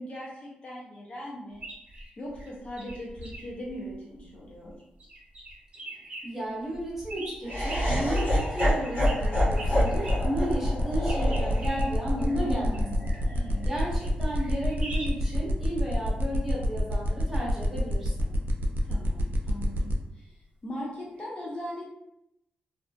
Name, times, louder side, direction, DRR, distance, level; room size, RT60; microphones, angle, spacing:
voice 1, 0.0-1.6 2.2-4.8 12.2-13.7 18.8-20.4 20.6-21.9, left 1 dB, 40° left, -4 dB, 0.5 m, -38 dB
sound 1, 1.5-4.7 5.0-6.2 6.7-10.2 11.1-15.4 21.2-21.3, right 1 dB, 45° right, 0.8 m, -43 dB
voice 2, 6.2-12.8 13.6-18.3, right 1 dB, 10° right, -7 dB, 1.1 m, -33 dB
Laughter, 7.4-13.6, equal, 70° left, 0.9 m, -28 dB
sound 2, 9.2-19.9, equal, 75° right, 0.3 m, -27 dB
2.4 x 2.3 x 2.2 m, 0.82 s
cardioid pair, 105°, 3 cm